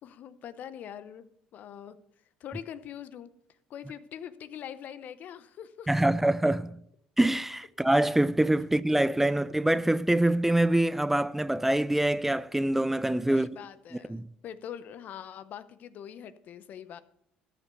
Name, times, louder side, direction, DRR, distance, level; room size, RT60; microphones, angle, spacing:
voice 1, 0.0-2.0 2.4-3.3 3.7-6.1 13.2-17.0, left 9 dB, 60° left, 0.8 m, -43 dB
voice 2, 5.9-6.8 7.2-13.6 14.1-14.3, right 1 dB, 10° right, 0.4 m, -25 dB
13.5 x 6.0 x 6.9 m
hypercardioid pair, 70°, 3 cm